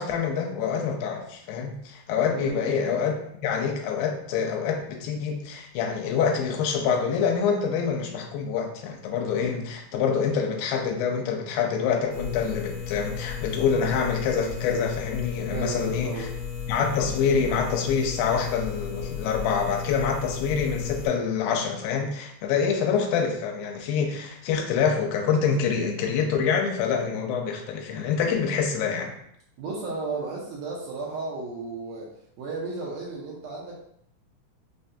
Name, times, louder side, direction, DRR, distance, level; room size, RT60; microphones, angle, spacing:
voice 1, 0.0-3.1 3.4-16.3 16.7-29.1, left 6 dB, 85° left, 3 dB, 2.4 m, -26 dB
voice 2, 2.3-2.7 15.5-16.3 29.6-33.7, right 3 dB, 80° right, -3 dB, 2.0 m, -34 dB
sound 1, 12.1-21.1, left 7 dB, 55° left, 1.1 m, -34 dB
5.4 x 2.2 x 2.6 m, 0.71 s
omnidirectional pair, 4.0 m